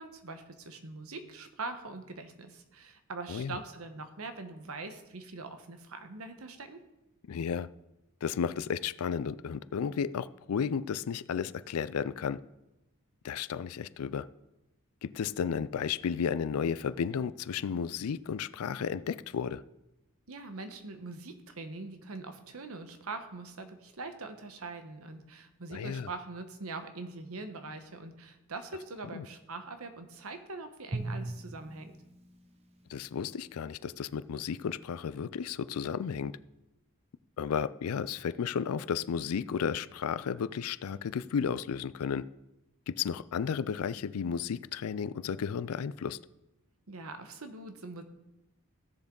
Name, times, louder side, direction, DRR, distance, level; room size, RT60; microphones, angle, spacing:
voice 1, 0.0-6.8 20.3-31.9 46.9-48.0, right 3 dB, 75° right, 8 dB, 1.1 m, -43 dB
voice 2, 7.3-7.7 8.2-12.4 13.2-14.3 15.0-19.6 25.7-26.1 29.1-29.3 32.9-36.4 37.4-42.3 42.9-46.2, left 7 dB, 85° left, 16 dB, 0.4 m, -33 dB
Drum, 30.9-33.3, right 2 dB, 30° right, 0.9 m, -40 dB
15.5 x 7.0 x 3.9 m, 0.94 s
head